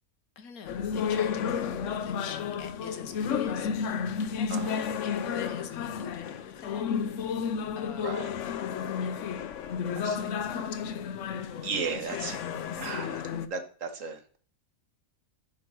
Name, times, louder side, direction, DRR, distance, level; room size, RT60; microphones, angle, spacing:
voice 1, 0.4-4.0 4.4-6.8 7.1-8.3 9.0-9.3 10.3-11.2 11.6-11.7 12.3-12.4, left 6 dB, 90° left, 1.5 m, -44 dB
sound 1, 0.7-13.5, left 7 dB, 65° left, 1.0 m, -32 dB
voice 2, 4.5-4.9 8.0-8.3 9.9-10.3 11.6-12.4 12.8-13.2 13.5-14.4, right 5 dB, 65° right, 1.6 m, -35 dB
10.0 x 4.6 x 6.3 m
omnidirectional pair, 1.5 m